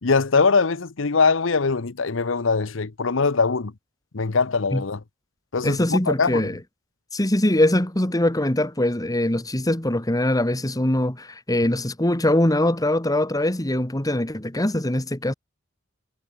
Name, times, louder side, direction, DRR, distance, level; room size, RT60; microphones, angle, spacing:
voice 1, 0.0-3.7 4.1-5.0 5.5-6.5, left 4 dB, 75° left, 0.9 m, -22 dB
voice 2, 5.6-6.6 7.1-15.3, left 1 dB, 20° left, 1.9 m, -22 dB
head